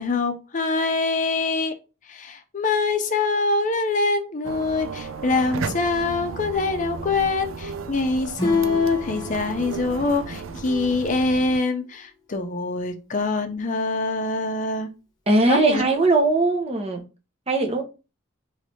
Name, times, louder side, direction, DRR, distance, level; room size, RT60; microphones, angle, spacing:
voice 1, 0.0-1.7 2.1-14.9 15.4-15.9, left 3 dB, 40° left, 0.6 m, -24 dB
sound 1, 4.4-11.6, right 4 dB, 70° right, 0.4 m, -34 dB
Acoustic guitar / Strum, 8.4-11.6, left 2 dB, 20° left, 0.9 m, -35 dB
voice 2, 15.3-17.0 17.5-17.8, right 2 dB, 30° right, 0.8 m, -20 dB
3.3 x 3.2 x 4.1 m
head